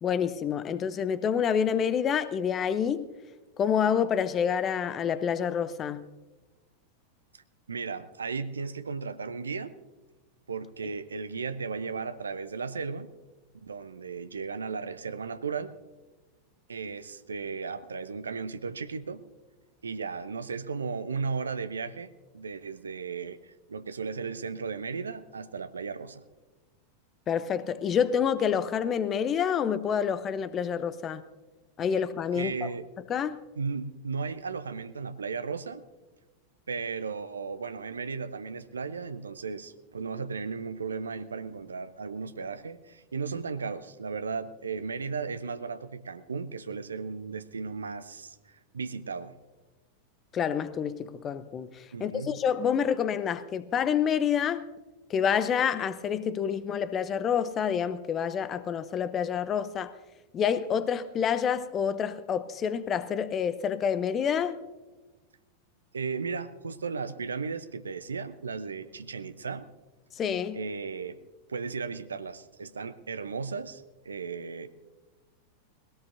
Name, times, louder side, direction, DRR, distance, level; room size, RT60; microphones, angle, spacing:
voice 1, 0.0-3.1 3.6-6.0 27.3-31.2 31.8-32.7 33.1-33.4 50.3-54.6 55.1-59.9 60.3-64.6 70.2-70.6, left 7 dB, 25° left, 0.7 m, -28 dB
voice 2, 7.7-9.7 10.5-13.1 13.6-15.7 16.7-19.2 19.8-23.4 23.7-26.2 32.3-32.9 33.6-35.8 36.7-49.4 51.9-52.4 65.9-69.7 70.5-71.2 71.5-74.7, right 5 dB, 75° right, 0.7 m, -35 dB
20.5 x 17.5 x 2.7 m
figure-of-eight pair, 90°, 0 cm